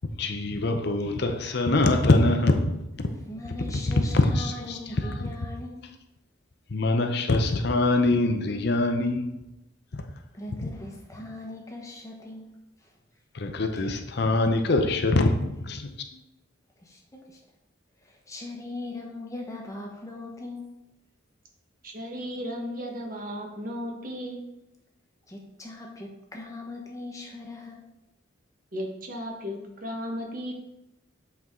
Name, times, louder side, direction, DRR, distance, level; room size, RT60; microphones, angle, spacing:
voice 1, 0.2-3.1 3.9-4.8 5.0-5.3 6.7-9.3 13.3-15.9, left 2 dB, 55° left, 5 dB, 0.7 m, -24 dB
voice 2, 3.1-5.9 10.3-12.5 12.8-12.9 13.7-13.8 16.8-17.4 18.0-20.7 25.3-27.9, left 2 dB, 15° left, 0 dB, 1.2 m, -40 dB
voice 3, 21.8-24.4 28.7-30.5, equal, 45° right, 0 dB, 1.3 m, -35 dB
8.0 x 4.6 x 3.7 m, 0.88 s
head